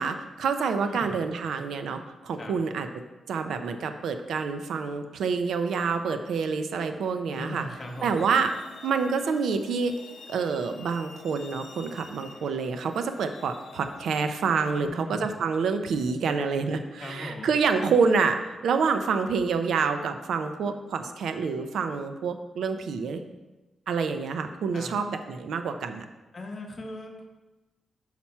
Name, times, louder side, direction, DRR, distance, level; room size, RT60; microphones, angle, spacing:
voice 1, 0.0-2.9 3.3-7.7 8.0-9.9 10.3-23.2 23.9-26.0, right 5 dB, 85° right, 8 dB, 0.5 m, -27 dB
voice 2, 0.8-1.2 2.3-2.6 7.3-8.3 14.7-15.3 17.0-17.5 24.7-24.9 26.3-27.2, left 1 dB, 30° left, 1 dB, 1.0 m, -39 dB
Truck, 7.5-14.9, left 4 dB, 55° left, 0.7 m, -49 dB
5.8 x 5.8 x 4.3 m, 1.1 s
wide cardioid pair, 160°, 0 cm